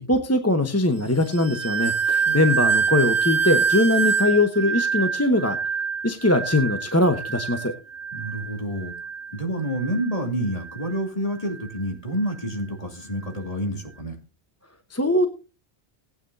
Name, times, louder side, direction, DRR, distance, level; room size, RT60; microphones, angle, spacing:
voice 1, 0.1-5.6 6.0-7.7 14.9-15.3, left 1 dB, 15° left, 6 dB, 0.9 m, -21 dB
sound 1, 1.2-10.2 10.5-10.9 11.5-11.7, right 6 dB, 70° right, 1.8 m, -26 dB
voice 2, 2.2-2.8 8.1-8.9 9.3-14.1, right 1 dB, 30° left, 1 dB, 2.7 m, -29 dB
19.0 x 9.1 x 2.7 m, 0.31 s
omnidirectional pair, 1.2 m